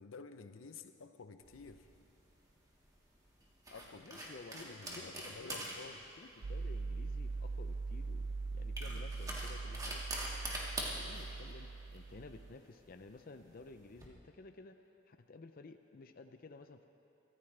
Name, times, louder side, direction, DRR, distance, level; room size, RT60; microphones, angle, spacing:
voice 1, 0.0-1.9 3.7-4.2 4.5-6.0, left 4 dB, 85° left, 9 dB, 0.7 m, -51 dB
sound 1, 1.4-14.1, right 1 dB, 20° right, 1.9 m, -46 dB
voice 2, 4.0-5.7 6.2-10.0 10.5-14.8 15.1-16.8, left 3 dB, 45° left, 7 dB, 0.5 m, -54 dB
sound 2, 6.4-12.5, right 3 dB, 55° right, 0.4 m, -41 dB
23.5 x 14.5 x 3.3 m, 2.8 s
head